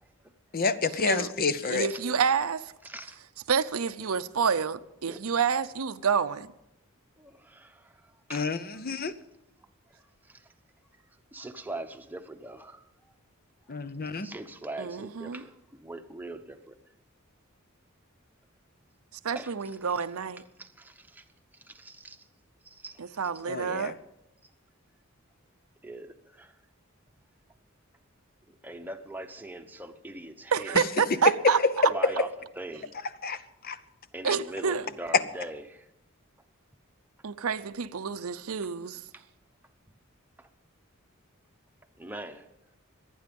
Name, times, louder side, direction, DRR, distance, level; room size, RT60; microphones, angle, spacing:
voice 1, 0.5-1.9 8.3-9.1 13.7-14.3 23.5-23.9 31.4-31.7 33.2-33.4 33.6-33.8 34.3-34.4, left 4 dB, 45° left, 0.7 m, -28 dB
voice 2, 1.7-2.7 3.5-6.5 14.8-15.4 19.2-20.4 23.0-24.0 30.5-31.9 34.2-34.8 37.2-39.0, right 6 dB, 90° right, 0.7 m, -28 dB
voice 3, 2.8-3.2 5.1-5.2 7.2-8.0 8.3-8.5 8.7-8.8 9.9-10.4 11.3-12.9 14.2-16.8 19.3-19.5 20.6-21.2 21.6-22.2 22.6-23.0 25.8-26.5 28.5-30.9 31.9-32.3 32.6-33.0 34.1-35.9 39.1-39.2 40.4-40.5 42.0-42.5, right 2 dB, 10° right, 0.9 m, -41 dB
24.5 x 9.5 x 5.3 m
head